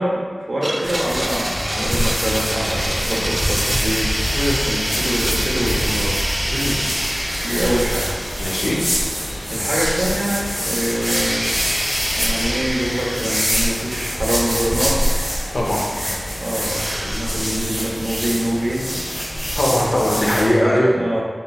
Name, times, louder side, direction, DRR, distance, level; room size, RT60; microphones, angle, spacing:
voice 1, 0.0-4.2 4.6-6.2 7.4-8.2 9.5-11.6 12.2-15.0 15.4-15.5 16.0-18.9 20.2-21.2, right 1 dB, 75° right, -4 dB, 0.8 m, -25 dB
Domestic sounds home sounds, 0.6-9.8 10.0-10.1 10.9-14.8 16.7-17.5, equal, 15° right, 0.3 m, -27 dB
sound 1, 0.8-20.5, equal, 10° left, 0.8 m, -25 dB
sound 2, 2.7-12.6, equal, 55° left, 1.5 m, -32 dB
voice 2, 8.4-8.8 15.5-15.8 19.6-20.9, left 1 dB, 90° left, -3 dB, 0.7 m, -19 dB
4.0 x 3.7 x 2.3 m, 1.5 s
wide cardioid pair, 65°, 0 cm